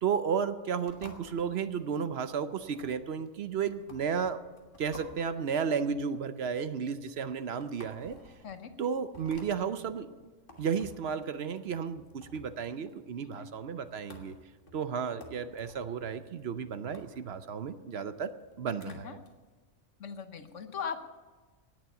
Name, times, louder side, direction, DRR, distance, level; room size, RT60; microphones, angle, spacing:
voice 1, 0.0-4.4 4.8-8.2 8.8-10.1 10.6-14.3 14.7-19.2, right 6 dB, 60° right, 11 dB, 0.9 m, -33 dB
sound 1, 0.9-19.3, left 2 dB, 45° left, 1.9 m, -55 dB
voice 2, 18.8-19.2 20.0-21.1, left 6 dB, 80° left, 8 dB, 1.4 m, -39 dB
18.0 x 7.3 x 6.9 m, 1.3 s
omnidirectional pair, 1.3 m